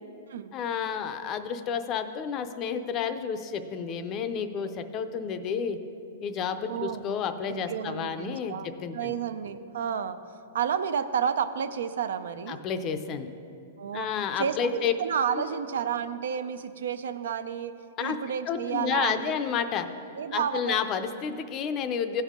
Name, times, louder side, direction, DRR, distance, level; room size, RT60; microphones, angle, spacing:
voice 1, 0.5-5.8 6.2-9.1 12.5-13.3 13.9-14.9 18.0-18.2 18.5-19.9 20.3-22.2, left 7 dB, 25° left, 9 dB, 0.5 m, -30 dB
voice 2, 6.7-7.0 7.5-8.7 8.9-10.2 10.5-12.6 13.8-14.1 14.4-17.7 18.0-19.4 20.2-20.8, right 8 dB, 80° right, 11 dB, 0.5 m, -31 dB
15.5 x 5.4 x 3.6 m, 2.6 s
hypercardioid pair, 155°, 0 cm